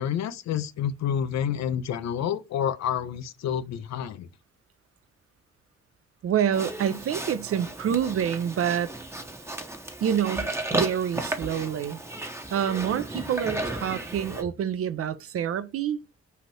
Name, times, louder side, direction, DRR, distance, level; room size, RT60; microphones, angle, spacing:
voice 1, 0.0-4.3, left 9 dB, 65° left, 0.4 m, -29 dB
voice 2, 6.2-8.9 10.0-12.0 12.5-16.0, right 9 dB, 50° right, 0.4 m, -27 dB
Livestock farm animals working animals, 6.5-14.4, right 2 dB, 10° right, 0.7 m, -34 dB
2.8 x 2.5 x 3.1 m
supercardioid pair, 45°, 29 cm